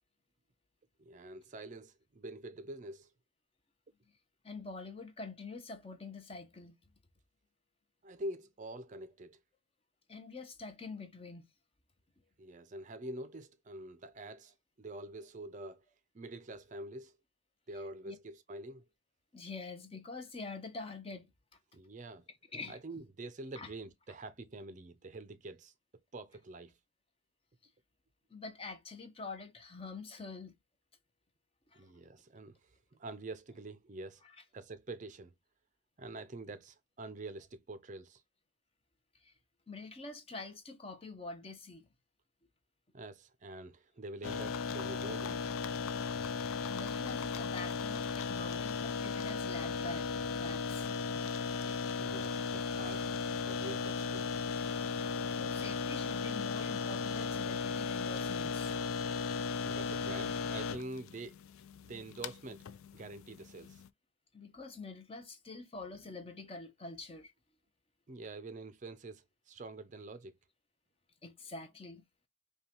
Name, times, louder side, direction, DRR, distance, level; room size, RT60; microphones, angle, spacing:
voice 1, 1.0-3.1 8.0-9.4 12.4-15.8 16.1-17.2 17.7-18.8 21.7-22.3 22.7-25.7 26.1-26.8 31.7-34.2 34.5-35.3 36.0-38.2 42.9-45.5 51.6-53.1 53.4-54.3 59.6-61.4 61.8-62.7 62.9-63.8 68.1-70.3, right 2 dB, 35° right, 0.5 m, -46 dB
voice 2, 4.4-6.8 10.1-11.5 18.1-18.2 19.3-21.3 22.5-22.8 23.6-23.7 28.3-30.5 31.7-31.9 34.2-34.3 39.2-39.3 39.7-41.9 46.2-46.3 46.7-51.4 55.3-58.7 64.3-67.3 71.2-72.0, left 3 dB, 25° left, 0.7 m, -46 dB
sound 1, 44.2-63.9, left 5 dB, 85° left, 0.4 m, -36 dB
5.4 x 2.3 x 2.9 m
head